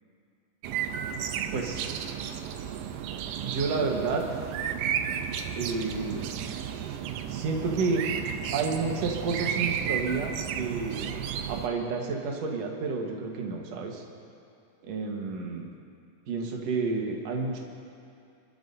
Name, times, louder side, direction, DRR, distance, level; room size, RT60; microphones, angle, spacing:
sound 1, 0.6-11.7, right 8 dB, 90° right, 2.3 m, -33 dB
voice 1, 1.5-2.0 3.4-4.2 5.6-6.2 7.3-8.0 8.5-11.1 11.5-14.0 14.8-15.7 16.3-17.6, right 4 dB, 60° right, 1 dB, 2.2 m, -30 dB
30.0 x 12.0 x 2.7 m, 2.5 s
omnidirectional pair, 3.8 m